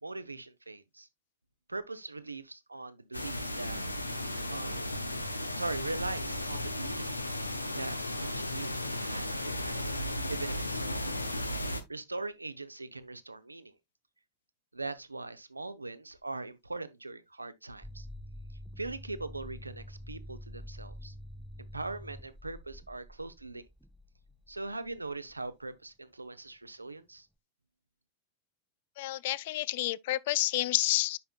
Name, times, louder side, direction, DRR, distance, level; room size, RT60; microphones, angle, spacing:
voice 1, 0.0-1.1 1.7-3.8 4.5-5.0 5.5-7.1 7.7-8.0 8.3-8.8 9.0-9.8 10.0-11.1 11.9-13.7 14.7-18.1 18.8-21.1 21.6-23.7 24.5-27.3, right 2 dB, 80° right, 0.7 m, -41 dB
sound 1, 3.1-11.8, left 1 dB, 85° left, 0.8 m, -35 dB
sound 2, 17.8-25.5, equal, ahead, 0.7 m, -47 dB
voice 2, 29.0-31.2, left 16 dB, 50° left, 0.3 m, -29 dB
9.6 x 5.7 x 2.3 m
figure-of-eight pair, 90°, 0 cm